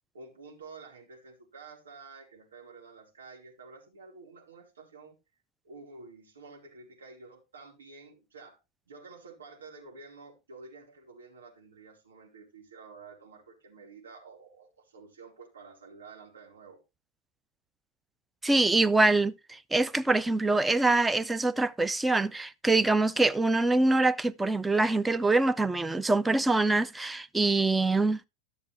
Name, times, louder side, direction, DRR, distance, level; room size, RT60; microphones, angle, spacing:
voice 1, 0.1-5.2 5.6-8.6 8.9-16.8, right 4 dB, 70° right, 4.2 m, -50 dB
voice 2, 18.4-28.2, right 2 dB, 10° right, 0.5 m, -24 dB
13.0 x 6.7 x 3.3 m
figure-of-eight pair, 90°, 0 cm